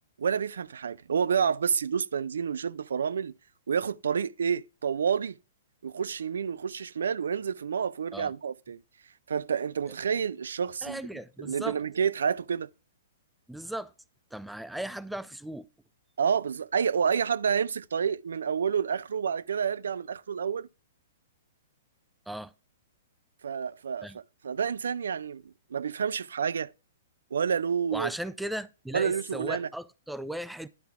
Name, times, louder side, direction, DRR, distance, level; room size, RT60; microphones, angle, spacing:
voice 1, 0.2-3.3 3.7-5.4 5.8-8.8 9.3-11.0 11.4-12.7 16.2-20.7 23.4-26.7 27.3-28.1 28.9-29.7, right 7 dB, 90° right, 0.4 m, -29 dB
voice 2, 10.8-11.8 13.5-13.9 14.3-15.6 22.3-22.5 24.0-24.2 27.9-30.7, right 1 dB, ahead, 0.3 m, -37 dB
10.5 x 5.7 x 3.6 m
hypercardioid pair, 150°, 0 cm